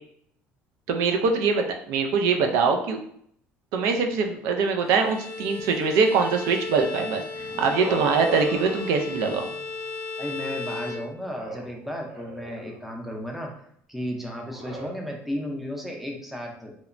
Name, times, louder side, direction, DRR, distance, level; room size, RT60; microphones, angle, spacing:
voice 1, 0.9-3.0 3.7-9.5, right 5 dB, 80° right, 4 dB, 0.3 m, -23 dB
Bowed string instrument, 4.8-11.6, left 3 dB, 65° left, 0.5 m, -35 dB
sound 1, 7.1-9.7 11.2-13.0 14.4-14.9, right 1 dB, 50° right, 1.2 m, -38 dB
voice 2, 10.2-13.5 13.9-16.7, equal, 5° right, 1 dB, 0.5 m, -34 dB
2.9 x 2.1 x 2.4 m, 0.67 s
cardioid pair, 120°, 5 cm